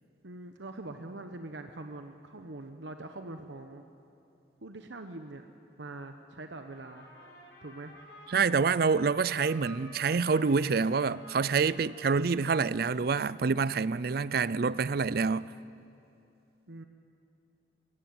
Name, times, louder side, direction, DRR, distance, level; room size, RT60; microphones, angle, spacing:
voice 1, 0.2-3.8 4.6-5.5 5.8-7.1 7.6-8.0 16.7-16.8, right 2 dB, 80° right, 1.0 m, -43 dB
Trumpet, 6.6-13.4, equal, 55° left, 7.3 m, -51 dB
voice 2, 8.3-15.5, right 5 dB, 55° right, 0.4 m, -27 dB
22.0 x 16.5 x 9.5 m
head